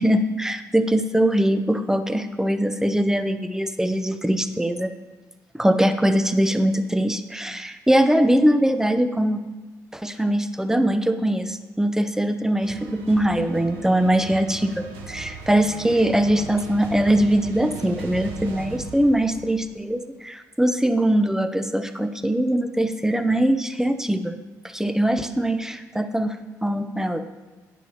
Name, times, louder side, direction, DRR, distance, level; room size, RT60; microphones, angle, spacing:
voice 1, 0.0-4.9 5.5-9.4 9.9-24.3 24.7-26.4 26.6-27.2, right 1 dB, 5° right, 9 dB, 0.6 m, -22 dB
sound 1, 12.6-19.6, right 4 dB, 70° right, 0.9 m, -38 dB
10.5 x 9.9 x 2.8 m, 1.2 s
figure-of-eight pair, 40°, 9 cm